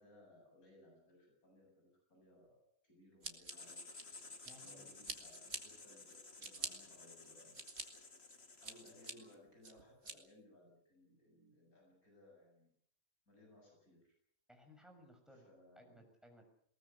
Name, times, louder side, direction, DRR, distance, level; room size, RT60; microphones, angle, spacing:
voice 1, 0.0-2.5 2.8-3.9 4.5-7.6 8.6-12.7 13.3-14.1 15.3-16.0, left 1 dB, 85° left, 0 dB, 8.3 m, -63 dB
Scissors, 3.2-4.7 5.0-5.6 6.1-6.7 7.2-7.8 8.3-9.1 9.6-10.1, right 3 dB, 45° right, 2.6 m, -45 dB
Writing, 3.5-9.4, left 3 dB, 45° left, 2.4 m, -55 dB
voice 2, 4.4-5.0 14.5-15.5 15.8-16.4, equal, ahead, 2 dB, 6.2 m, -61 dB
21.0 x 19.5 x 8.3 m, 0.65 s
omnidirectional pair, 1.5 m